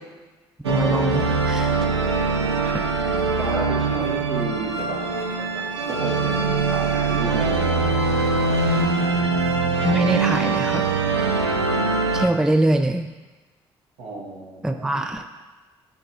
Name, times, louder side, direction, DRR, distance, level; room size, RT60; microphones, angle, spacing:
sound 1, 0.6-12.3, right 3 dB, 85° right, 0.4 m, -22 dB
voice 1, 0.7-1.7 2.6-2.7 9.8-10.8 12.1-13.1 14.6-15.2, right 1 dB, 5° right, 7 dB, 0.4 m, -23 dB
voice 2, 3.4-5.0 5.9-7.9 14.0-15.1, right 2 dB, 65° right, -3 dB, 1.5 m, -32 dB
11.0 x 4.5 x 2.8 m, 1.3 s
figure-of-eight pair, 45°, 14 cm